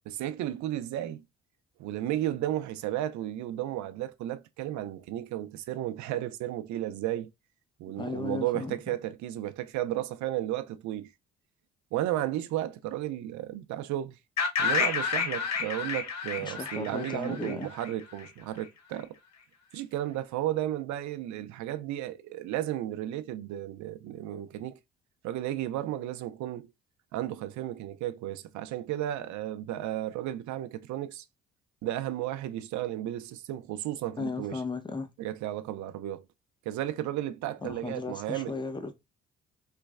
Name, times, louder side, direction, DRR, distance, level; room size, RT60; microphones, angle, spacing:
voice 1, 0.1-1.2 1.8-7.3 7.8-11.1 11.9-14.2 14.6-19.2 19.7-24.8 25.2-26.7 27.1-31.2 31.8-34.6 35.2-36.2 36.7-38.5, right 13 dB, 60° right, 0.6 m, -33 dB
voice 2, 7.9-8.9 16.4-17.7 34.2-35.1 37.6-38.9, left 4 dB, 15° left, 0.8 m, -36 dB
sound 1, 14.4-18.2, left 6 dB, 55° left, 1.1 m, -30 dB
3.2 x 3.0 x 2.4 m
hypercardioid pair, 55°, 33 cm